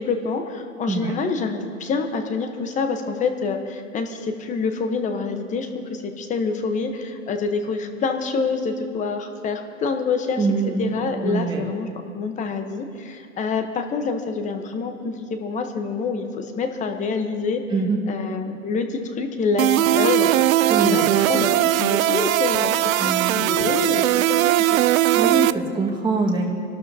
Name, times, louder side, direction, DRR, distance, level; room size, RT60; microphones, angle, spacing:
voice 1, 0.0-10.5 10.8-11.9 12.1-17.6 18.1-20.5 20.8-24.8, left 4 dB, 20° left, 6 dB, 1.0 m, -27 dB
voice 2, 10.4-11.7 17.7-18.0 20.7-21.1 23.0-23.5 25.1-26.5, right 3 dB, 10° right, -2 dB, 1.7 m, -24 dB
sound 1, 19.6-25.5, right 14 dB, 75° right, 0.6 m, -19 dB
27.5 x 12.5 x 2.8 m, 2.3 s
hypercardioid pair, 140°, 41 cm